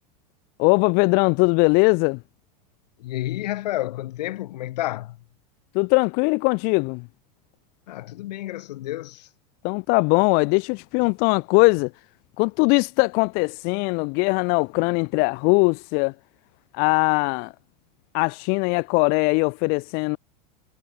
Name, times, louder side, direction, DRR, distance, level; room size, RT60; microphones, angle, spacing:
voice 1, 0.6-2.2 5.7-7.1 9.6-11.9 12.4-16.1 16.7-17.5 18.1-20.2, left 32 dB, 50° left, 0.5 m, -20 dB
voice 2, 3.0-5.2 7.9-9.3, left 15 dB, 80° left, 1.8 m, -30 dB
supercardioid pair, 130°, 21 cm